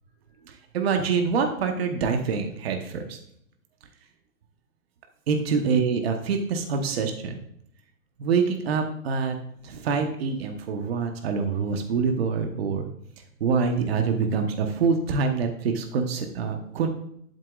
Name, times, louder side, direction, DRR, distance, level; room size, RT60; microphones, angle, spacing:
voice 1, 0.5-3.2 5.3-7.4 8.2-9.3 9.6-12.9 13.4-16.9, right 5 dB, 50° right, 5 dB, 1.1 m, -25 dB
12.0 x 7.9 x 2.4 m, 0.70 s
hypercardioid pair, 180°, 41 cm